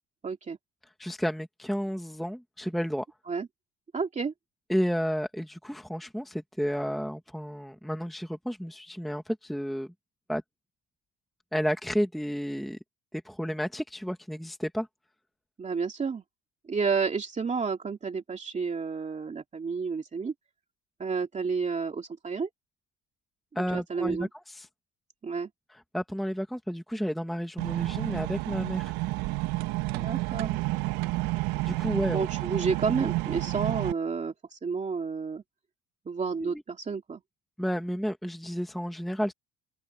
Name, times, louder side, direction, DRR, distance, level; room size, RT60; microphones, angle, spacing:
voice 1, 0.2-0.6 3.3-3.5 3.9-4.3 15.6-16.2 16.7-20.3 21.0-22.5 23.7-24.3 25.2-25.5 29.9-30.6 32.1-35.4 36.1-37.2, right 5 dB, 20° right, 2.5 m, -31 dB
voice 2, 1.0-3.0 4.7-9.9 10.3-10.4 11.5-12.8 13.1-14.9 23.5-24.7 25.9-28.9 31.7-32.3 36.4-36.6 37.6-39.3, equal, ahead, 1.4 m, -31 dB
sound 1, 27.6-33.9, right 20 dB, 90° right, 1.3 m, -30 dB
open air
cardioid pair, 155°, 36 cm